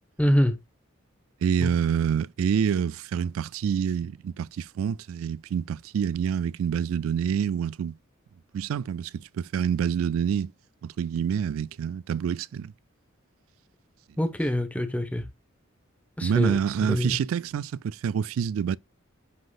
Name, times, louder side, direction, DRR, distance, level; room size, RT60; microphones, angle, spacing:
voice 1, 0.2-0.6 1.6-1.7 14.2-15.2 16.2-17.2, equal, 5° left, 1.0 m, -25 dB
voice 2, 1.4-8.0 8.5-10.5 10.8-12.7 16.2-18.8, right 7 dB, 85° right, 0.3 m, -27 dB
10.0 x 3.9 x 2.4 m
head